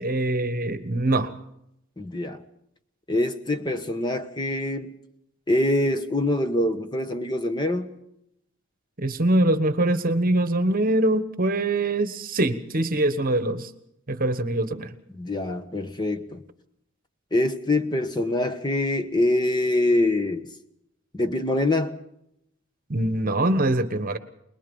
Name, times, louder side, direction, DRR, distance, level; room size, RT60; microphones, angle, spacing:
voice 1, 0.0-1.3 9.0-13.7 14.1-14.9 22.9-24.2, right 1 dB, 40° right, 11 dB, 1.3 m, -23 dB
voice 2, 2.0-2.4 3.1-4.9 5.5-7.9 15.1-16.4 17.3-20.5 21.1-22.0, left 1 dB, 20° left, 8 dB, 1.2 m, -24 dB
23.0 x 21.5 x 5.5 m, 0.78 s
head